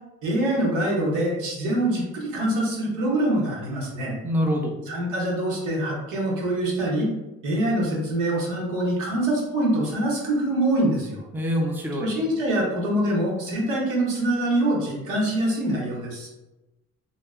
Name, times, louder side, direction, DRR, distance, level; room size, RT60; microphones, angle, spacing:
voice 1, 0.2-4.2 4.9-7.1 7.4-11.2 12.0-16.3, right 1 dB, 90° right, -4 dB, 1.1 m, -24 dB
voice 2, 4.2-4.7 11.3-12.1, equal, 5° right, 0 dB, 0.5 m, -24 dB
2.9 x 2.0 x 3.5 m, 1.0 s
cardioid pair, 90°, 30 cm